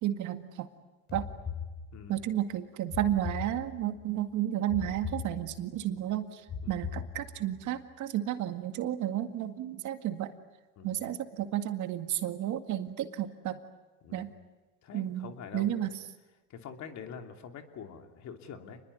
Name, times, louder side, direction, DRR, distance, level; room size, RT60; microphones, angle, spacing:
voice 1, 0.0-0.7 1.1-1.2 2.1-6.4 6.7-10.3 10.8-13.6 14.1-14.3 14.9-15.9, right 12 dB, 45° right, 8 dB, 2.0 m, -32 dB
sound 1, 1.1-2.3 2.9-4.1 4.7-5.9 6.5-7.6, left 6 dB, 25° left, 4.7 m, -40 dB
voice 2, 1.9-2.2 6.6-6.8 10.8-11.0 14.0-14.3 14.8-15.9 16.5-18.8, left 7 dB, 40° left, 5 dB, 2.9 m, -45 dB
28.0 x 21.0 x 9.6 m, 1.2 s
supercardioid pair, 105°, 42 cm